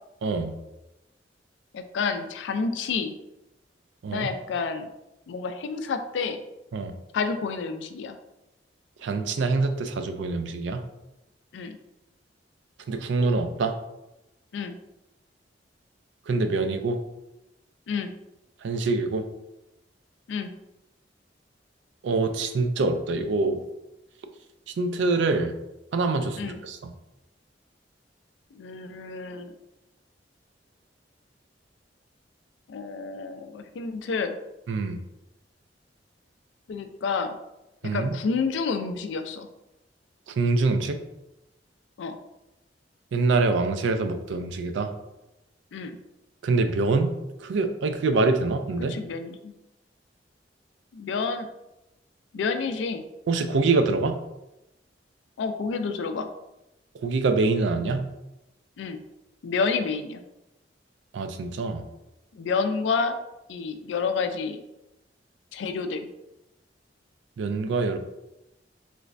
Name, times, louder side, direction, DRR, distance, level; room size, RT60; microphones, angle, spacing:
voice 1, 0.2-0.5 4.0-4.3 6.7-6.9 9.0-10.8 12.9-13.8 16.3-17.0 18.6-19.3 22.0-23.6 24.8-25.5 25.9-26.8 34.7-35.0 37.8-38.1 40.3-41.0 43.1-44.9 46.4-47.1 47.4-49.0 53.3-54.2 57.0-58.1 61.1-61.8 67.4-68.0, right 3 dB, 80° right, 8 dB, 0.4 m, -25 dB
voice 2, 1.7-3.1 4.1-4.9 5.3-6.4 7.1-8.2 11.5-11.8 14.5-14.8 17.9-18.1 20.3-20.5 26.4-26.6 28.5-29.6 32.7-34.4 36.7-37.4 37.8-39.5 42.0-42.2 45.7-46.0 48.9-49.5 50.9-51.5 52.3-53.0 55.4-56.3 58.8-59.0 59.4-60.2 62.3-63.2 63.5-64.6 65.5-66.1, left 5 dB, 85° left, 8 dB, 0.3 m, -29 dB
3.2 x 3.1 x 2.5 m, 0.93 s
head